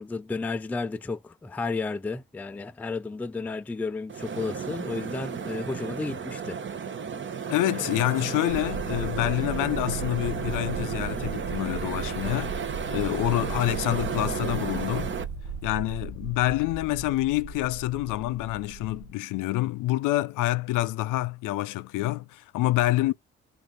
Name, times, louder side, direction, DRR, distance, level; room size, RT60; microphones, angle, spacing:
voice 1, 0.0-6.6, left 3 dB, 5° left, 0.3 m, -32 dB
sound 1, 4.1-15.2, right 6 dB, 35° right, 0.7 m, -33 dB
voice 2, 7.5-15.1 15.6-23.1, left 17 dB, 65° left, 0.5 m, -27 dB
sound 2, 8.5-19.1, right 5 dB, 80° right, 0.8 m, -37 dB
3.5 x 2.4 x 3.8 m
hypercardioid pair, 40°, 34 cm